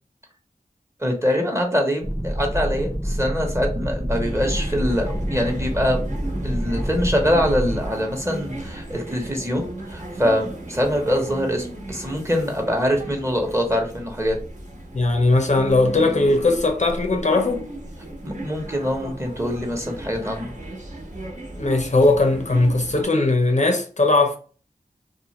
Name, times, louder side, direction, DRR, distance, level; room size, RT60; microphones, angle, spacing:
voice 1, 1.0-6.0 6.4-14.4 18.2-20.5, equal, 20° right, 0.9 m, -24 dB
sound 1, 2.0-7.9, equal, ahead, 0.5 m, -27 dB
sound 2, 4.1-23.0, right 1 dB, 55° right, 1.1 m, -35 dB
voice 2, 14.9-17.7 21.6-24.4, left 2 dB, 50° left, 0.6 m, -19 dB
2.4 x 2.4 x 2.9 m
wide cardioid pair, 50°, 15 cm